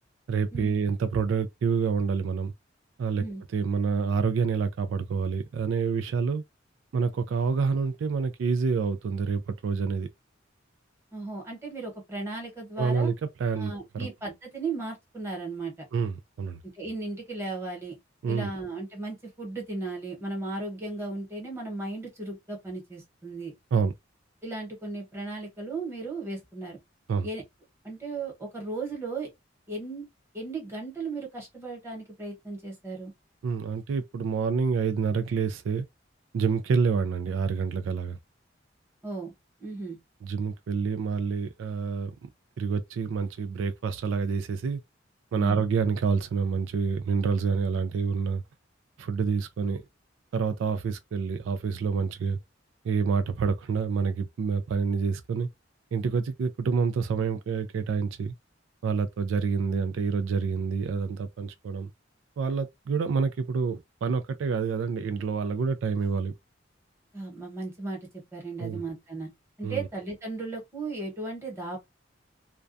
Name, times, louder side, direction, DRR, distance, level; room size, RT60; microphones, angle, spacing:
voice 1, 0.3-2.5 3.0-3.2 3.5-6.4 6.9-10.1 12.8-14.1 15.9-16.6 18.2-18.5 23.7-23.9 27.1-27.3 33.4-35.9 36.3-38.2 40.2-42.3 42.6-44.8 45.3-48.4 49.0-49.8 50.3-52.4 52.8-55.5 55.9-58.3 58.8-61.9 62.4-66.3 68.6-68.8 69.6-69.9, right 5 dB, 75° right, 0.3 m, -27 dB
voice 2, 11.1-13.1 13.6-15.7 16.7-18.0 18.3-23.5 24.4-26.8 27.2-27.4 27.8-29.3 29.7-30.1 30.3-33.1 39.0-39.3 39.6-40.0 45.3-45.7 67.1-68.0 68.3-69.3 69.6-71.8, right 3 dB, 15° right, 1.0 m, -36 dB
2.3 x 2.2 x 2.5 m
head